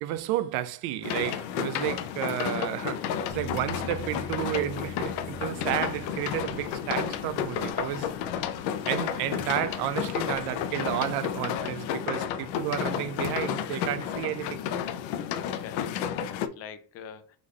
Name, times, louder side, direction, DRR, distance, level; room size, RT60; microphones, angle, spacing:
voice 1, 0.0-8.1 8.9-14.6, right 13 dB, 65° right, 0.5 m, -31 dB
sound 1, 1.0-16.5, left 9 dB, 80° left, 0.6 m, -32 dB
sound 2, 3.3-7.4, left 3 dB, 55° left, 1.3 m, -43 dB
sound 3, 3.4-11.6, right 2 dB, 25° right, 1.0 m, -51 dB
voice 2, 15.0-17.4, left 7 dB, 35° left, 0.5 m, -45 dB
3.8 x 3.5 x 3.1 m
cardioid pair, 175°, 42 cm